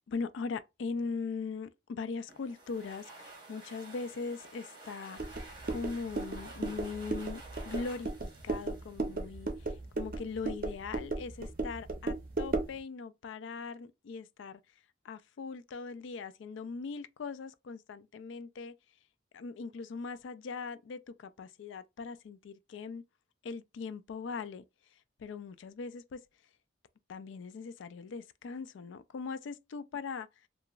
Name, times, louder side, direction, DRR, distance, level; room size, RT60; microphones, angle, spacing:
voice 1, 0.1-9.5 10.0-14.6 15.0-18.7 19.3-23.0 23.4-24.6 25.2-26.2 27.1-30.3, left 4 dB, 75° left, 0.3 m, -40 dB
sound 1, 2.3-9.8, right 2 dB, 25° right, 1.0 m, -51 dB
sound 2, 5.2-12.8, right 2 dB, 45° right, 0.6 m, -36 dB
2.9 x 2.4 x 2.3 m
head